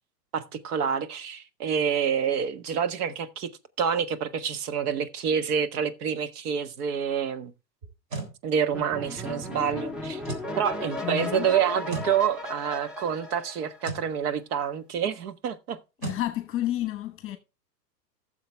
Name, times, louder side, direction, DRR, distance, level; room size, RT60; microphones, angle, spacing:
voice 1, 0.3-3.5 3.8-7.5 8.4-10.2 10.6-15.8, right 7 dB, 65° right, 1.4 m, -27 dB
sound 1, 7.8-8.4 10.2-10.5 11.9-12.2 13.8-14.1 16.0-16.3, right 4 dB, 40° right, 3.7 m, -35 dB
sound 2, 8.7-14.2, left 2 dB, ahead, 0.5 m, -36 dB
voice 2, 11.0-11.5 16.0-17.4, left 13 dB, 25° left, 1.2 m, -30 dB
14.5 x 7.0 x 3.4 m
hypercardioid pair, 120°, 50 cm